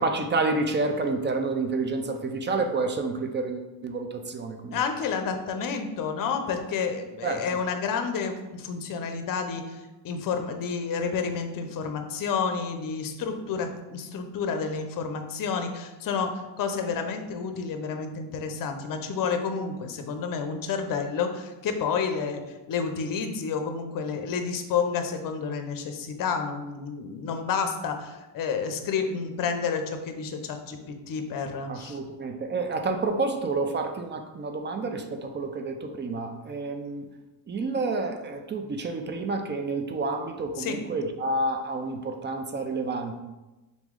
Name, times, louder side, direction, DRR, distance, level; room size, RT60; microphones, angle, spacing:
voice 1, 0.0-4.8 7.2-7.6 31.7-37.1 37.5-43.2, right 3 dB, 25° right, 6 dB, 0.4 m, -29 dB
voice 2, 4.7-32.0 40.6-40.8, left 5 dB, 45° left, 6 dB, 0.6 m, -30 dB
3.9 x 3.0 x 3.7 m, 1.1 s
cardioid pair, 95°, 46 cm